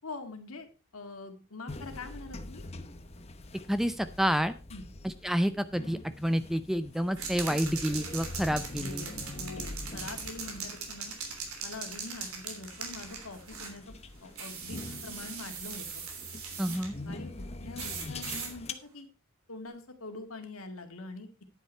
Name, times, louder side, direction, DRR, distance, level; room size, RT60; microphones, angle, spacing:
voice 1, 0.0-0.7 0.9-2.6 4.7-4.9 8.8-11.1 11.6-14.0 14.2-16.1 16.6-16.8 17.1-19.1 19.5-21.3, left 3 dB, 80° left, 6 dB, 2.1 m, -44 dB
sound 1, 1.7-18.7, left 2 dB, 30° left, 0.9 m, -44 dB
voice 2, 3.7-4.5 5.0-9.0 16.6-16.9, equal, ahead, 12 dB, 0.5 m, -29 dB
sound 2, 7.2-13.8 14.4-16.9 17.8-18.5, right 5 dB, 90° right, 3.1 m, -40 dB
10.0 x 9.1 x 4.5 m, 0.31 s
head